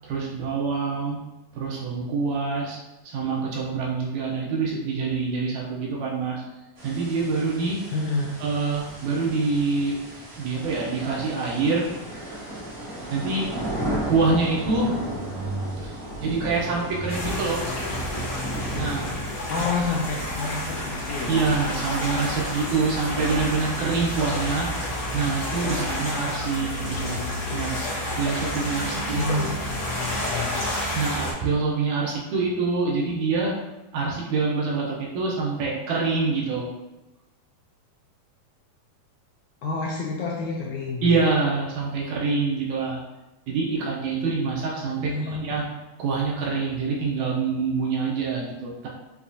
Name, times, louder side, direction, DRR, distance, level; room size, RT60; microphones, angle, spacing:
voice 1, 0.0-1.2 1.5-2.8 3.0-6.4 6.8-7.8 8.4-10.0 10.4-11.9 13.1-13.5 14.1-15.0 15.3-15.9 16.2-17.6 18.7-19.1 21.3-27.8 28.2-29.4 31.0-33.6 33.9-36.7 41.0-43.0 43.5-45.7 46.0-48.9, right 4 dB, 80° right, -3 dB, 1.9 m, -26 dB
sound 1, 6.8-19.2, right 1 dB, 50° right, 1.1 m, -35 dB
voice 2, 7.9-8.3 19.5-21.4 29.1-30.7 39.6-41.1 45.0-45.4, left 4 dB, 80° left, -2 dB, 1.7 m, -29 dB
sound 2, 17.1-31.3, left 1 dB, 50° left, 1.0 m, -30 dB
7.0 x 2.4 x 2.7 m, 1.0 s
omnidirectional pair, 3.7 m